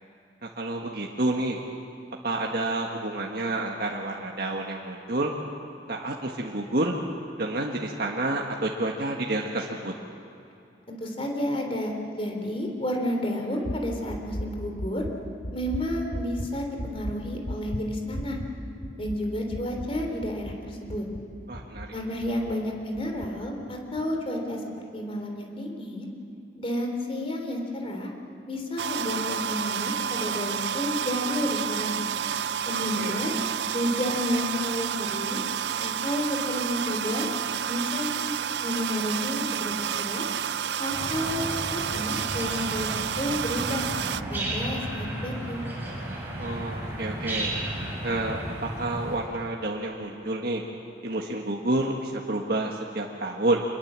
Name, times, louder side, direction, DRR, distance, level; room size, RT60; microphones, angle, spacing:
voice 1, 0.4-1.6 2.2-5.3 5.9-6.9 7.4-9.9 21.5-21.9 33.0-33.2 46.4-47.5 48.0-50.6 51.0-53.6, right 2 dB, 60° right, -1 dB, 1.6 m, -29 dB
voice 2, 10.9-15.0 15.5-18.4 19.0-21.0 21.9-24.6 24.9-26.1 26.6-28.1 28.5-32.0 32.7-33.3 33.7-35.4 35.8-37.3 37.6-38.4 38.6-40.3 40.8-42.9 43.2-43.9 44.3-45.6, left 1 dB, 35° left, 3 dB, 3.4 m, -31 dB
sound 1, 13.6-22.6 22.9-23.3 23.7-24.0, equal, 70° left, 1.8 m, -37 dB
sound 2, 28.8-44.2, right 8 dB, 75° right, 0.5 m, -30 dB
sound 3, 40.9-49.2, right 1 dB, 10° right, 7.3 m, -34 dB
26.0 x 22.0 x 7.5 m, 2.7 s
head